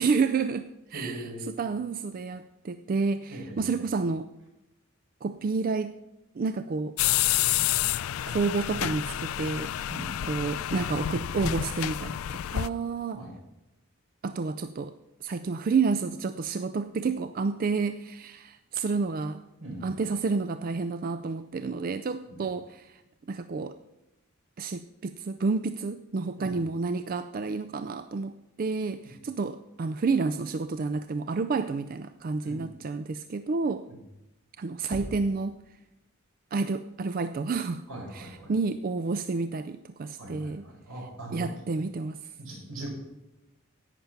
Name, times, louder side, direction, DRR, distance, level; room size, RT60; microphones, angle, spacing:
voice 1, 0.0-4.3 5.2-6.0 6.4-7.0 7.4-7.7 8.3-9.7 10.3-13.2 14.2-14.9 15.2-19.4 19.8-23.0 23.3-23.8 24.6-33.9 34.6-35.6 36.5-37.8 38.1-40.6 41.3-42.2, right 4 dB, 45° right, 11 dB, 0.4 m, -30 dB
voice 2, 0.9-1.4 3.3-3.8 9.9-10.1 13.1-13.3 19.6-19.9 22.3-22.4 26.4-26.6 29.0-29.2 32.4-32.7 33.9-34.0 37.9-38.5 40.2-41.6 42.4-42.9, right 1 dB, 80° right, -1 dB, 4.7 m, -40 dB
sound 1, 7.0-12.7, left 12 dB, 85° left, 0.4 m, -29 dB
Knock, 34.9-35.8, equal, 25° right, 1.2 m, -41 dB
11.0 x 8.9 x 5.7 m, 0.95 s
head